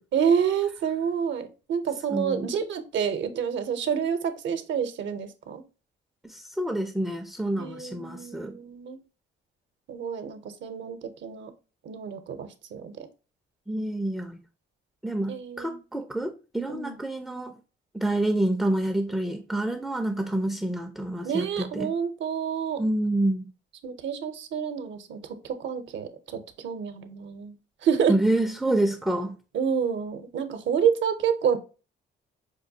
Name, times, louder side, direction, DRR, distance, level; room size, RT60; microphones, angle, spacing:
voice 1, 0.1-5.6 7.6-9.0 9.9-11.5 11.8-13.1 15.3-15.8 16.7-17.0 21.2-22.8 23.8-25.2 25.4-27.5 27.8-28.1 29.5-31.6, right 7 dB, 70° right, 0.6 m, -28 dB
voice 2, 2.1-2.5 6.2-8.6 13.7-14.4 15.0-17.5 17.9-21.9 22.8-23.5 28.1-29.4, right 1 dB, ahead, 0.3 m, -28 dB
5.1 x 2.2 x 2.6 m
cardioid pair, 90°, 20 cm